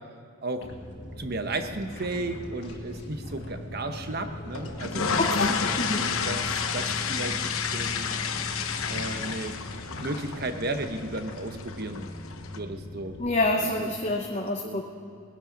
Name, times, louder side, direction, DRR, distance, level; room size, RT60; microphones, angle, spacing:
sound 1, 0.6-13.5, left 1 dB, 50° left, 1.9 m, -40 dB
voice 1, 1.2-5.2 5.9-7.4 7.7-8.1 8.9-9.6 9.9-12.1 12.5-13.2 13.6-14.2 14.6-14.8, right 2 dB, 45° right, 7 dB, 0.9 m, -34 dB
sound 2, 4.5-12.6, left 6 dB, 70° left, 0.9 m, -30 dB
voice 2, 5.2-6.0 13.2-14.8, left 2 dB, 30° left, 2 dB, 0.8 m, -27 dB
19.5 x 11.0 x 5.2 m, 2.4 s
head